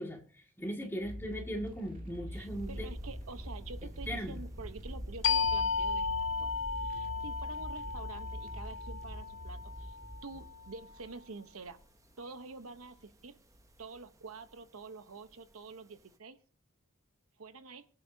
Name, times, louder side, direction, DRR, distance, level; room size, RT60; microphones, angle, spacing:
voice 1, 0.0-2.9 4.1-4.4, equal, 10° left, 1 dB, 2.0 m, -39 dB
sound 1, 1.0-11.1, equal, 40° right, 2.1 m, -45 dB
sound 2, 2.3-16.1, right 1 dB, 15° right, 0.7 m, -50 dB
voice 2, 2.3-10.0 10.2-11.8 12.2-13.4 13.8-16.4 17.4-17.9, right 4 dB, 80° right, 10 dB, 1.0 m, -48 dB
sound 3, 5.2-10.5, left 5 dB, 60° left, 0.6 m, -34 dB
24.5 x 8.4 x 2.8 m, 0.43 s
head